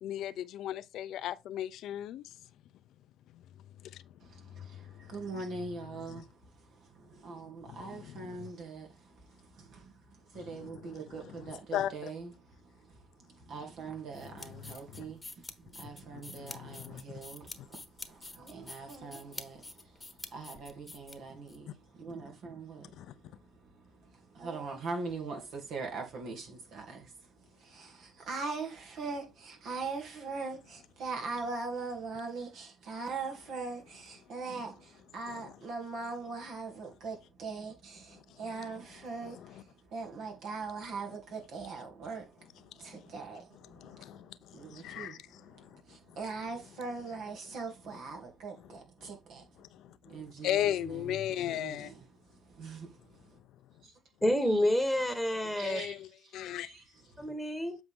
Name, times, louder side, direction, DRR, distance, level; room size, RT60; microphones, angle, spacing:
voice 1, 0.0-2.3 3.3-3.4 3.8-4.0 4.5-5.3 6.1-6.2 7.7-8.5 10.3-10.9 11.4-12.1 14.3-15.1 16.1-17.2 17.6-17.7 21.7-21.8 22.9-23.1 35.3-35.5 39.2-39.6 42.9-43.1 43.7-45.8 49.6-51.9 55.6-56.0 56.3-56.7, left 12 dB, 70° left, 0.6 m, -38 dB
voice 2, 4.2-49.6 50.0-53.4 53.8-53.9 54.4-54.6 55.4-55.9 56.6-56.8, right 4 dB, 65° right, 2.7 m, -42 dB
sound 1, 14.1-21.6, left 2 dB, 15° left, 1.2 m, -47 dB
voice 3, 54.2-55.8 57.2-57.8, left 1 dB, 5° right, 1.6 m, -28 dB
8.0 x 4.8 x 3.7 m
supercardioid pair, 75°, 0 cm